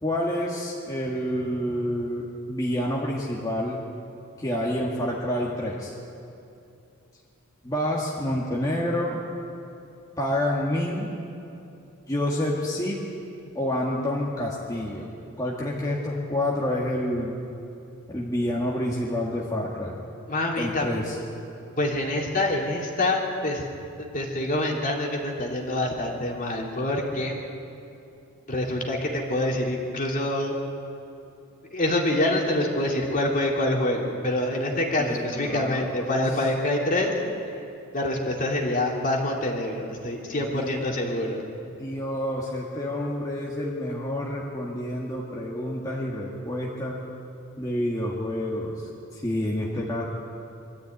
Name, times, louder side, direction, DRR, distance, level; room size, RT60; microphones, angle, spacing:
voice 1, 0.0-3.8 4.4-5.9 7.6-9.2 10.2-11.1 12.1-13.0 13.5-15.1 15.4-17.3 18.1-20.0 20.5-21.1 35.0-36.0 40.5-40.9 41.8-47.1 47.6-50.0, left 1 dB, 15° left, -5 dB, 1.8 m, -28 dB
voice 2, 20.3-20.8 21.8-23.6 24.0-27.4 28.5-30.6 31.7-37.1 37.9-41.4, left 1 dB, 40° left, -1 dB, 2.8 m, -26 dB
24.0 x 13.0 x 9.2 m, 2.7 s
head